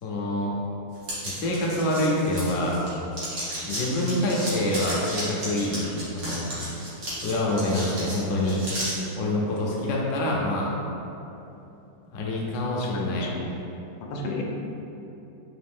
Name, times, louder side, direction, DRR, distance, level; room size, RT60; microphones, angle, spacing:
voice 1, 0.0-0.5 1.2-2.8 3.7-5.9 6.1-6.5 7.2-8.6 9.2-10.7 12.1-13.3, left 1 dB, 65° left, -3 dB, 0.8 m, -26 dB
sound 1, 1.0-2.9 3.1-8.9, right 1 dB, 75° right, 1.9 m, -34 dB
voice 2, 12.8-13.5 14.1-14.4, left 3 dB, 85° left, 0 dB, 1.3 m, -33 dB
4.1 x 2.8 x 3.5 m, 2.9 s
omnidirectional pair, 2.0 m